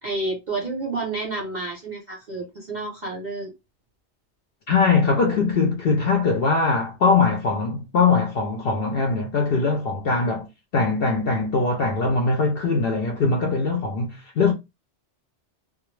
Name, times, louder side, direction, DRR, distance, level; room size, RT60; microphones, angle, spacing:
voice 1, 0.0-3.5, right 3 dB, 50° right, 0.6 m, -30 dB
voice 2, 4.7-10.5 10.7-14.5, left 4 dB, 65° left, 0.7 m, -21 dB
2.2 x 2.0 x 3.0 m
omnidirectional pair, 1.2 m